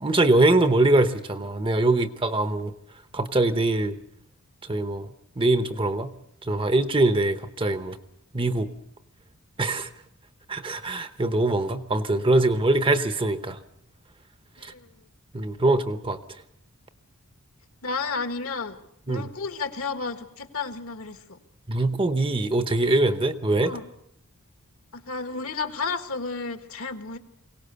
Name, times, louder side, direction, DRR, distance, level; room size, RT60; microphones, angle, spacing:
voice 1, 0.0-2.7 3.1-4.0 4.7-6.1 6.4-8.0 8.3-8.7 9.6-9.9 10.5-13.6 14.6-14.7 15.3-16.2 19.1-19.3 21.7-23.8, right 2 dB, 25° right, 11 dB, 0.9 m, -23 dB
voice 2, 14.6-15.0 17.8-18.8 19.1-21.4 23.6-23.9 24.9-27.2, left 4 dB, 70° left, 8 dB, 1.6 m, -32 dB
23.0 x 18.0 x 6.9 m, 0.75 s
head